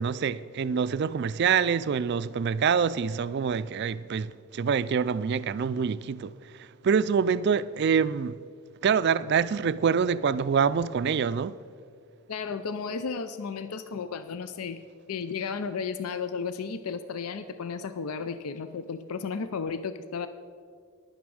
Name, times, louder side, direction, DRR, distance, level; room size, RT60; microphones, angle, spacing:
voice 1, 0.0-6.3 6.8-8.4 8.8-11.6, right 6 dB, 50° right, 0.3 m, -25 dB
voice 2, 12.3-14.8 15.1-20.3, left 5 dB, 80° left, 0.5 m, -33 dB
11.0 x 9.4 x 6.3 m
head